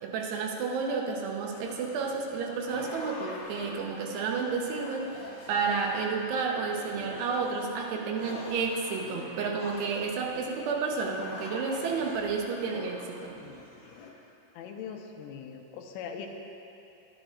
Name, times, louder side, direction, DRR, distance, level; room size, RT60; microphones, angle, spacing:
voice 1, 0.0-13.4, right 4 dB, 75° right, 1 dB, 2.5 m, -31 dB
sound 1, 1.5-14.1, left 3 dB, 60° left, 2.9 m, -46 dB
voice 2, 14.5-16.3, left 7 dB, 80° left, 2 dB, 3.1 m, -41 dB
23.0 x 11.0 x 2.5 m, 2.8 s
omnidirectional pair, 5.8 m